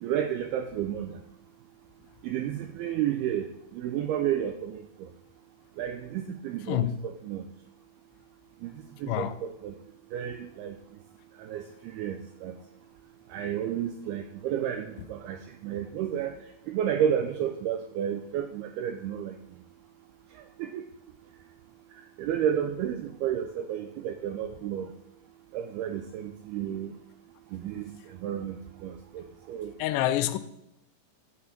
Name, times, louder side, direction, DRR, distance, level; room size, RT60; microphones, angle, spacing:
voice 1, 0.0-1.2 2.2-5.1 5.8-7.5 8.6-8.7 9.0-9.8 10.1-10.8 11.4-12.6 13.3-19.4 20.3-20.9 22.0-24.9 25.5-26.9 27.5-29.7, right 9 dB, 85° right, 2.3 m, -32 dB
voice 2, 29.8-30.4, left 13 dB, 90° left, 2.9 m, -26 dB
12.5 x 4.3 x 7.1 m
omnidirectional pair, 5.1 m